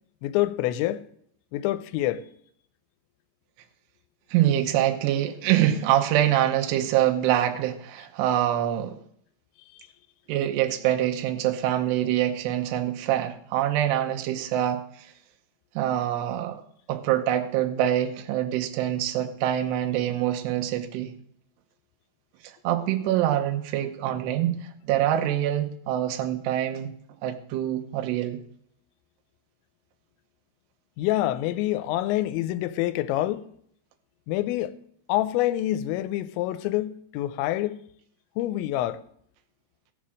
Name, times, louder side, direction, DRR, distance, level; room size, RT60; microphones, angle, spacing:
voice 1, 0.2-1.1 1.5-2.2 31.0-33.4 34.3-34.7 35.1-37.8 38.4-39.0, left 14 dB, 85° left, 2.9 m, -26 dB
voice 2, 4.3-9.0 10.3-15.1 15.8-16.6 16.9-21.1 22.4-24.6 24.8-26.9 27.2-28.4, right 12 dB, 75° right, 2.9 m, -25 dB
14.5 x 7.2 x 6.3 m
omnidirectional pair, 5.2 m